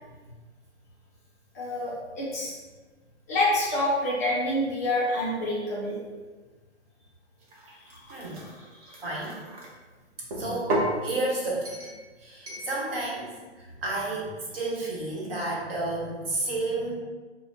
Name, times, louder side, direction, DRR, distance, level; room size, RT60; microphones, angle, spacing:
voice 1, 1.5-2.5 3.3-6.0, left 1 dB, 15° left, -7 dB, 0.4 m, -27 dB
sound 1, 7.4-9.7 10.3-11.0 11.7-12.0 12.5-12.7, right 1 dB, 30° right, 0.7 m, -33 dB
voice 2, 8.1-8.4 9.0-9.4 10.4-11.8 12.2-13.3 13.6-16.9, right 2 dB, 55° right, -4 dB, 1.3 m, -31 dB
5.3 x 2.1 x 2.7 m, 1.3 s
hypercardioid pair, 150°, 35 cm